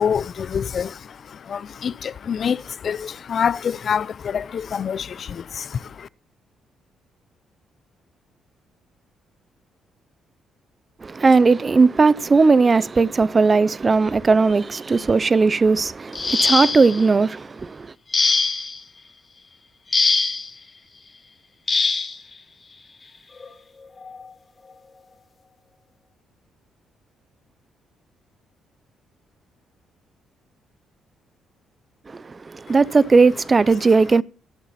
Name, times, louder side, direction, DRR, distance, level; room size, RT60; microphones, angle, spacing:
voice 1, 0.0-6.1 32.7-32.8, left 7 dB, 50° left, 0.5 m, -26 dB
voice 2, 11.0-17.9 32.1-34.2, right 4 dB, 30° right, 0.6 m, -17 dB
sound 1, 16.1-17.0 18.1-18.8 19.9-20.5 21.7-22.2 23.4-23.5 24.0-24.2, left 4 dB, 30° left, 1.6 m, -21 dB
20.0 x 7.2 x 4.2 m
cardioid pair, 90°, 0 cm